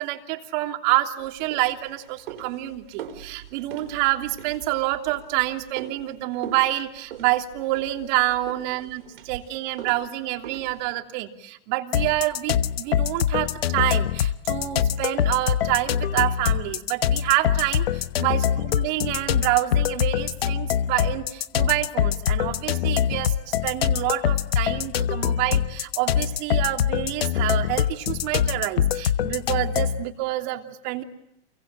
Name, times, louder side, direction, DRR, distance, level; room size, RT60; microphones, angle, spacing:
voice 1, 0.0-31.0, right 17 dB, 50° right, 4 dB, 3.0 m, -27 dB
sound 1, 1.2-10.9, right 8 dB, 75° right, 4.5 m, -42 dB
sound 2, 11.9-30.0, left 9 dB, 85° left, 1.1 m, -24 dB
29.0 x 23.0 x 8.9 m, 0.79 s
hypercardioid pair, 130°, 29 cm